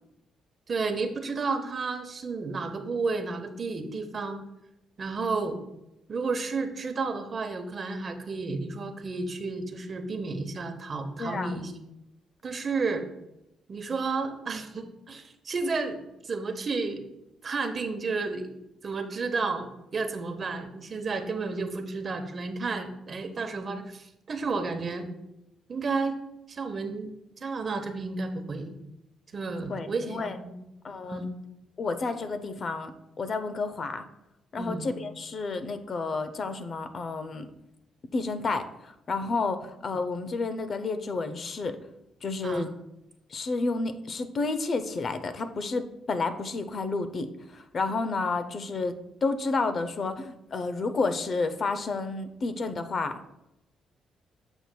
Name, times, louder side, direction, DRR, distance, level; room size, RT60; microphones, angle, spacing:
voice 1, 0.7-4.4 5.0-5.6 6.1-11.7 12.4-13.1 13.7-17.0 17.4-18.5 18.8-25.1 25.7-26.2 26.5-27.1 27.4-28.7 29.3-30.5 31.1-31.3 34.6-34.9 42.4-42.7, right 4 dB, 40° right, 7 dB, 0.8 m, -32 dB
voice 2, 11.2-11.6 29.7-30.4 30.8-31.2 31.8-34.0 34.5-37.5 38.1-41.8 42.2-42.7 43.3-53.2, left 3 dB, 45° left, 9 dB, 0.5 m, -31 dB
7.8 x 6.9 x 2.2 m, 0.88 s
cardioid pair, 90°, 0 cm